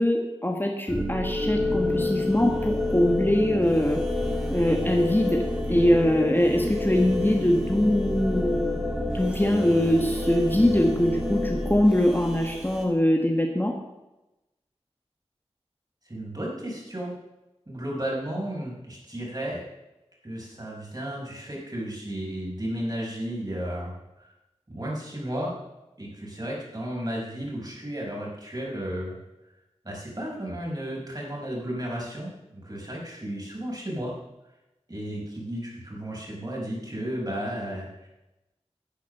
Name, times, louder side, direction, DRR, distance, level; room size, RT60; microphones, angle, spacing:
voice 1, 0.0-4.0 4.5-5.4 5.7-13.7, equal, 20° left, 2 dB, 1.4 m, -23 dB
sound 1, 0.9-12.8, left 2 dB, 5° right, 2.4 m, -29 dB
voice 2, 16.1-17.1 17.7-19.6 20.2-24.3 24.7-25.5 26.0-29.2 29.8-34.1 34.9-38.1, right 1 dB, 35° right, -4 dB, 5.3 m, -33 dB
10.5 x 8.4 x 6.7 m, 0.99 s
wide cardioid pair, 45°, 11 cm